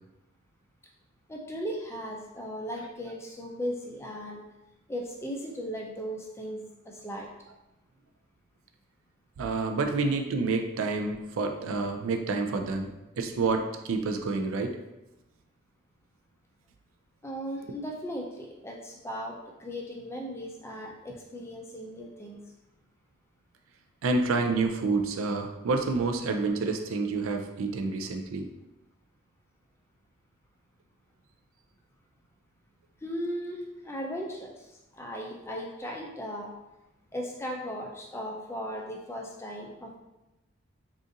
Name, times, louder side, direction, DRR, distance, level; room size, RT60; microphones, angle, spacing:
voice 1, 1.3-4.4 4.9-7.3 17.2-22.4 33.0-36.5 37.1-40.0, equal, 15° left, 0 dB, 0.3 m, -37 dB
voice 2, 9.4-12.9 13.2-14.8 24.0-28.5, right 3 dB, 80° right, 4 dB, 0.4 m, -28 dB
3.8 x 2.4 x 2.6 m, 0.98 s
head